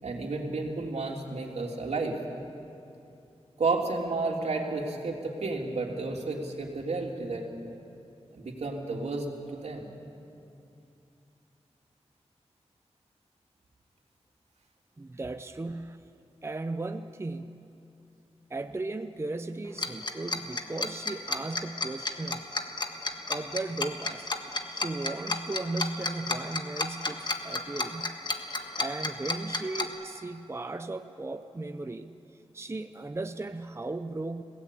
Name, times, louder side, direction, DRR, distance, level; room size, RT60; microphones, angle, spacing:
voice 1, 0.0-2.2 3.6-7.4 8.3-9.9, right 3 dB, 80° right, 1 dB, 3.1 m, -32 dB
voice 2, 15.0-16.1 16.4-17.7 18.5-22.5 23.3-24.3 24.7-28.2 28.8-32.2 32.5-34.4, right 2 dB, 25° right, 8 dB, 0.7 m, -36 dB
Tick-tock, 19.8-29.8, left 2 dB, 40° left, 1.6 m, -31 dB
30.0 x 18.0 x 8.5 m, 2.7 s
wide cardioid pair, 115°, 11 cm